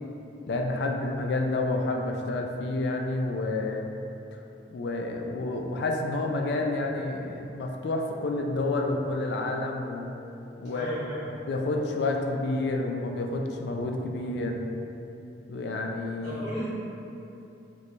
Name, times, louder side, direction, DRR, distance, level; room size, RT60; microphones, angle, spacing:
voice 1, 0.5-3.9 4.7-10.1 10.6-11.0 11.5-14.6 15.5-16.4, left 2 dB, 60° left, 2 dB, 0.3 m, -29 dB
voice 2, 10.6-11.3 16.2-16.7, right 1 dB, 40° right, -13 dB, 0.8 m, -35 dB
3.1 x 2.1 x 4.0 m, 2.9 s
head